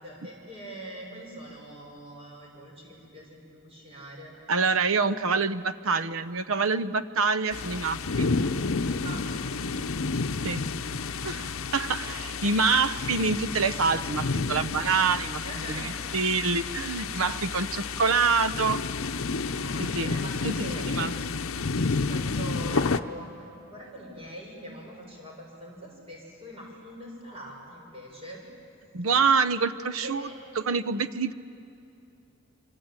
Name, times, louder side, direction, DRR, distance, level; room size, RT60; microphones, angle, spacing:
voice 1, 0.0-4.3 7.2-7.5 8.9-10.6 11.9-12.3 15.4-15.9 19.3-20.9 22.1-28.4 30.0-30.4, right 1 dB, 25° right, -1 dB, 6.6 m, -43 dB
voice 2, 4.5-8.4 10.4-10.7 11.2-15.4 15.7-18.8 19.8-20.1 20.4-20.5 21.0-21.1 28.9-30.3 30.6-31.3, right 4 dB, 75° right, 13 dB, 0.8 m, -26 dB
sound 1, 7.5-23.0, left 4 dB, 70° left, 0.8 m, -30 dB
26.0 x 25.5 x 9.0 m, 2.7 s
head